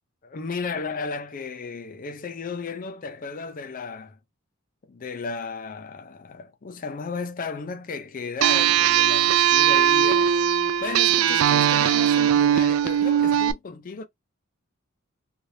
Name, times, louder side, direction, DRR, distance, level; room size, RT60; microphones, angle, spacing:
voice 1, 0.2-4.2 4.9-10.3 10.8-14.1, left 4 dB, 40° left, 0.5 m, -34 dB
sound 1, 8.4-13.5, right 10 dB, 75° right, 0.3 m, -19 dB
3.2 x 2.4 x 2.6 m
head